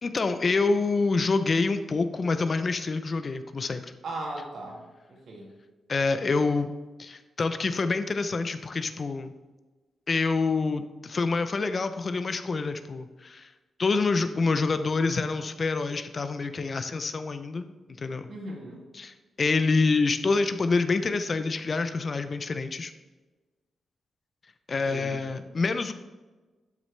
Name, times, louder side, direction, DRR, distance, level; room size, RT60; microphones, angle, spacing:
voice 1, 0.0-3.8 5.9-6.7 7.0-9.3 10.1-13.5 13.8-17.7 18.0-18.3 18.9-22.9 24.7-25.9, left 3 dB, 35° left, 10 dB, 0.5 m, -27 dB
voice 2, 4.0-4.8 5.1-5.5 18.3-18.8 24.9-25.5, right 2 dB, 65° right, -2 dB, 2.4 m, -38 dB
11.5 x 6.4 x 3.2 m, 1.2 s
wide cardioid pair, 145°, 0 cm